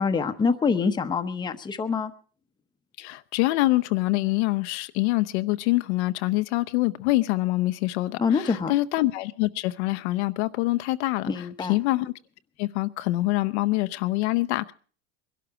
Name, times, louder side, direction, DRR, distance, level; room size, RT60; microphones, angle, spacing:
voice 1, 0.0-2.1 8.2-8.7 11.3-11.7, left 5 dB, 15° left, 0.8 m, -25 dB
voice 2, 3.0-12.1 12.6-14.7, left 19 dB, 75° left, 0.8 m, -25 dB
21.5 x 12.0 x 4.8 m
supercardioid pair, 135°, 34 cm